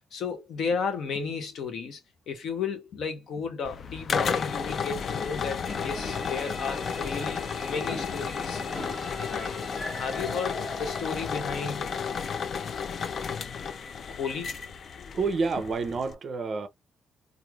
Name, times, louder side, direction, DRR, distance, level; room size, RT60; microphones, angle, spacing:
voice 1, 0.1-2.0 2.3-8.6 9.2-9.6 10.0-11.9 14.1-14.5, left 5 dB, 65° left, 0.8 m, -33 dB
sound 1, 3.6-16.1, left 6 dB, 45° left, 0.3 m, -33 dB
sound 2, 5.6-11.9, left 1 dB, 20° left, 0.7 m, -40 dB
voice 2, 15.1-16.7, right 4 dB, 40° right, 0.4 m, -28 dB
3.1 x 2.4 x 2.2 m
cardioid pair, 150°, 0 cm